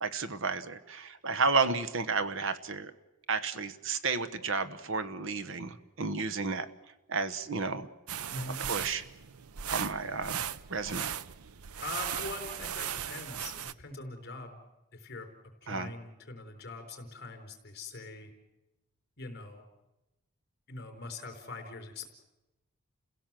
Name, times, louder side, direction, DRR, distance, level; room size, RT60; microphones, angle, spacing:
voice 1, 0.0-2.9 3.3-6.7 7.1-7.9 8.6-9.0 9.7-10.4 10.7-11.1 15.7-15.9, right 4 dB, 60° right, 13 dB, 1.1 m, -32 dB
sound 1, 8.1-13.7, right 9 dB, 85° right, 0.7 m, -37 dB
voice 2, 8.3-8.6 11.8-14.6 14.9-18.3 19.2-19.6 20.7-22.1, left 3 dB, 45° left, 4 dB, 4.4 m, -43 dB
29.5 x 16.5 x 7.6 m, 1.0 s
head